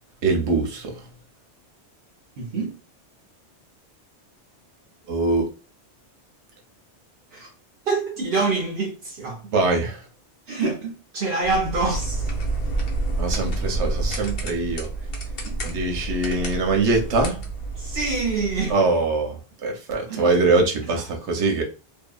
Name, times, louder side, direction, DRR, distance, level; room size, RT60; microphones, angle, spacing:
voice 1, 0.2-0.9 5.1-5.5 9.5-10.0 13.2-14.9 15.7-17.4 18.7-21.6, right 3 dB, 85° right, 1.0 m, -23 dB
voice 2, 2.4-2.8 7.3-7.5 7.9-9.4 10.5-12.3 15.4-15.6 17.8-18.7 20.1-20.3, right 3 dB, 60° right, 0.9 m, -26 dB
sound 1, 11.4-18.7, right 2 dB, 60° left, 0.9 m, -28 dB
2.7 x 2.4 x 2.2 m
omnidirectional pair, 1.2 m